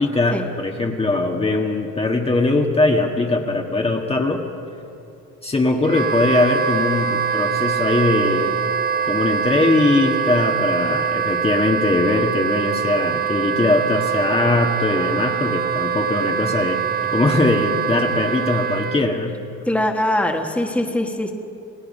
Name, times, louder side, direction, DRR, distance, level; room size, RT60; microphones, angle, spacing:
voice 1, 0.0-4.4 5.4-8.6 9.0-16.8 17.1-19.4, left 2 dB, 20° left, 1 dB, 1.7 m, -20 dB
Wind instrument woodwind instrument, 5.8-19.0, right 7 dB, 30° right, 0.8 m, -23 dB
voice 2, 19.7-21.3, left 1 dB, 5° left, 2 dB, 1.8 m, -22 dB
28.0 x 17.5 x 5.5 m, 2.7 s
cardioid pair, 105°, 29 cm